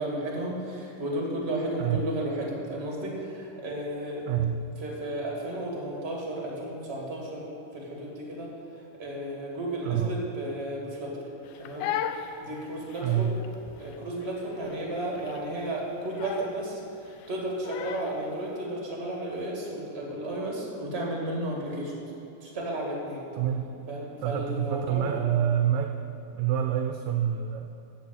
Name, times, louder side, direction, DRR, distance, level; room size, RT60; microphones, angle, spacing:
voice 1, 0.0-4.3 4.8-11.2 11.6-11.9 12.4-13.3 13.8-21.9 22.4-23.3 23.9-25.3, right 1 dB, 20° right, -2 dB, 2.1 m, -33 dB
voice 2, 4.3-4.7 9.8-10.2 13.0-13.4 23.3-23.7 24.2-25.9 26.3-27.7, right 9 dB, 80° right, 6 dB, 1.8 m, -27 dB
Crying sobbing, 11.4-18.3, left 9 dB, 90° left, 1.4 m, -37 dB
14.0 x 5.6 x 8.2 m, 3.0 s
omnidirectional pair, 3.5 m